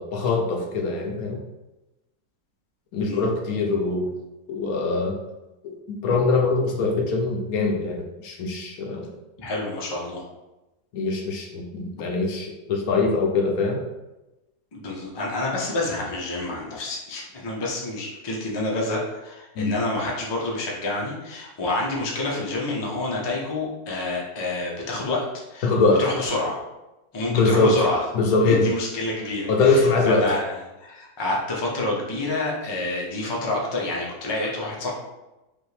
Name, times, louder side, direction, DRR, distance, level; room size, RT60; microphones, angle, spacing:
voice 1, 0.0-1.4 2.9-4.1 4.5-5.1 5.6-9.1 10.9-13.8 19.6-19.8 25.6-26.0 27.3-27.8 28.1-28.7 29.5-30.3, left 3 dB, 70° left, 1 dB, 1.1 m, -22 dB
voice 2, 9.4-10.2 14.7-26.6 27.1-28.0 28.5-34.9, left 2 dB, 25° left, -3 dB, 0.5 m, -28 dB
5.2 x 2.5 x 3.3 m, 1.0 s
omnidirectional pair, 1.7 m